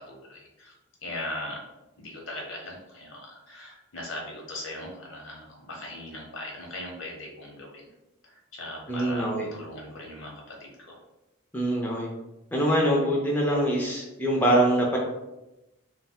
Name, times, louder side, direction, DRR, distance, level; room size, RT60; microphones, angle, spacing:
voice 1, 0.1-0.7 1.0-1.6 2.0-7.9 8.2-11.0, left 1 dB, 70° left, -1 dB, 0.8 m, -39 dB
voice 2, 8.9-9.5 11.5-12.1 12.5-15.0, right 1 dB, 10° left, -3 dB, 0.4 m, -24 dB
2.3 x 2.1 x 3.6 m, 0.98 s
head